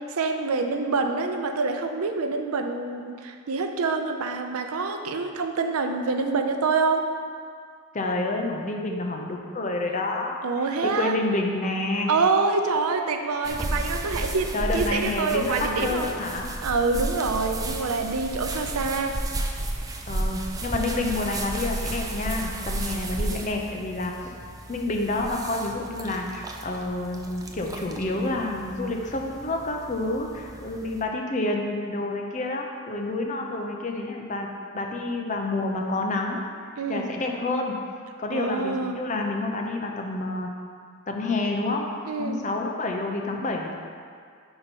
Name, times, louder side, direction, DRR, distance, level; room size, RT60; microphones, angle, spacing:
voice 1, 0.0-7.0 10.4-11.1 12.1-16.1 16.6-19.2 36.8-37.1 38.3-39.0 42.1-42.4, right 4 dB, 80° right, 5 dB, 0.5 m, -26 dB
voice 2, 7.9-10.4 10.8-12.1 13.5-13.6 14.2-16.5 20.1-24.1 24.7-34.5 34.7-36.4 36.9-37.8 38.2-40.5 41.1-41.9 42.2-43.7, left 2 dB, 35° left, 1 dB, 0.5 m, -28 dB
sound 1, 13.4-31.0, right 1 dB, 15° right, 0.3 m, -33 dB
5.4 x 4.5 x 5.2 m, 2.1 s
head